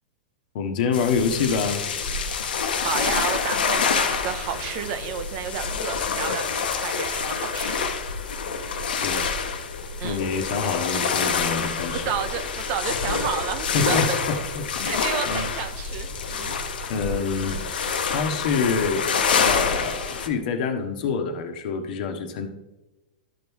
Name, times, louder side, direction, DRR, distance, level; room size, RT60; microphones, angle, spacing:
voice 1, 0.5-1.8 8.9-9.2 10.0-12.0 13.7-14.8 15.3-15.5 16.9-17.6 18.1-19.0 19.3-22.5, left 5 dB, 60° left, 6 dB, 1.2 m, -26 dB
sound 1, 0.9-20.3, left 5 dB, 80° left, 1.0 m, -27 dB
voice 2, 2.8-7.8 10.0-10.2 11.7-14.2 14.8-16.6, right 8 dB, 50° right, 9 dB, 0.8 m, -31 dB
12.5 x 4.6 x 3.6 m, 1.0 s
hypercardioid pair, 125°, 5 cm